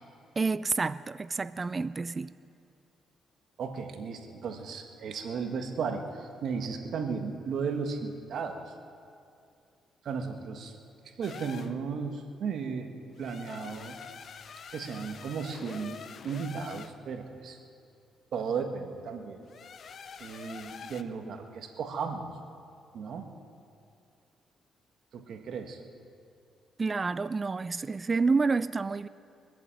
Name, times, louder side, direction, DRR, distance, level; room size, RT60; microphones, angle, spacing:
voice 1, 0.4-2.3 26.8-29.1, right 4 dB, 30° right, 0.3 m, -29 dB
voice 2, 3.6-8.6 10.0-10.7 11.2-12.9 13.2-14.0 14.7-17.6 18.3-19.4 20.2-22.3 22.9-23.3 25.1-25.8, right 5 dB, 65° right, 1.5 m, -35 dB
sound 1, 11.2-11.8 13.1-17.0 19.5-21.0, left 6 dB, 55° left, 0.7 m, -45 dB
23.5 x 8.0 x 7.6 m
cardioid pair, 90°, 0 cm